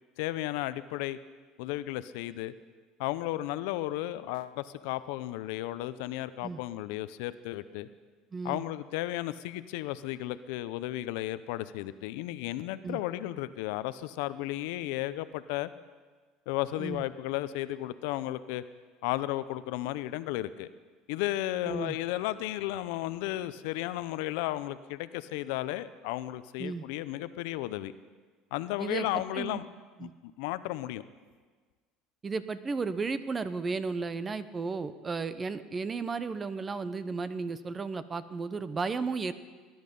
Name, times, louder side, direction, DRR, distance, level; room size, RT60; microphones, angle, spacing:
voice 1, 0.2-1.2 1.6-2.5 3.0-7.9 8.4-15.7 16.5-18.6 19.0-20.7 21.1-27.9 28.5-29.7 30.0-30.1 30.4-31.0, left 15 dB, 80° left, 14 dB, 0.6 m, -34 dB
voice 2, 8.3-8.6 12.8-13.0 16.8-17.0 21.6-22.0 26.6-26.8 28.8-29.6 30.0-30.1 32.2-39.3, right 4 dB, 25° right, 13 dB, 0.8 m, -34 dB
20.0 x 10.5 x 5.4 m, 1.5 s
supercardioid pair, 115°, 0 cm